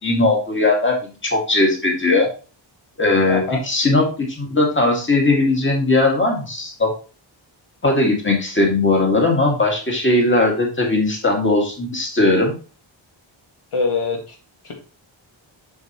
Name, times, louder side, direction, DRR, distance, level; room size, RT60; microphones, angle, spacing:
voice 1, 0.0-2.3 3.0-6.9 7.8-12.5, left 2 dB, 25° left, 0 dB, 2.1 m, -18 dB
voice 2, 3.3-3.6 13.7-14.4 14.6-14.7, left 4 dB, 85° left, 2 dB, 2.0 m, -23 dB
7.1 x 6.7 x 3.0 m, 0.34 s
wide cardioid pair, 155°, 49 cm